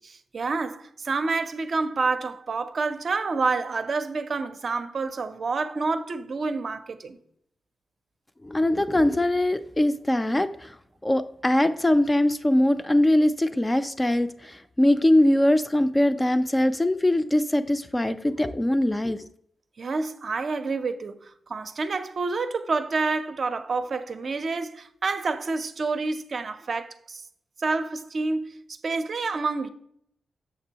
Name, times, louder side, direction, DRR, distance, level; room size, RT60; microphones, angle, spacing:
voice 1, 0.0-7.2 19.8-27.2 27.6-29.7, right 4 dB, 50° right, 0.5 m, -28 dB
voice 2, 8.4-10.7 11.0-19.2, left 1 dB, 15° left, 0.3 m, -22 dB
6.7 x 6.0 x 2.8 m
wide cardioid pair, 105°, 0 cm